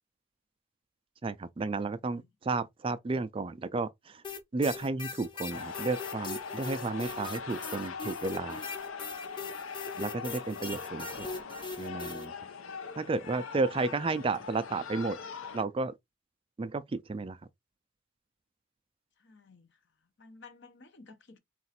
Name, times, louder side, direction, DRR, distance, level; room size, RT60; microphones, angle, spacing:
voice 1, 1.2-4.2 4.5-8.6 10.0-11.3 11.8-12.3 13.0-15.2 15.5-15.9 16.6-17.4, right 3 dB, 25° right, 0.3 m, -32 dB
voice 2, 2.0-2.3 19.2-19.8 20.2-21.4, left 3 dB, 55° left, 0.9 m, -54 dB
sound 1, 4.2-12.3, left 4 dB, 20° left, 0.9 m, -41 dB
sound 2, 5.5-15.6, left 5 dB, 75° left, 0.7 m, -41 dB
3.9 x 2.5 x 4.2 m
head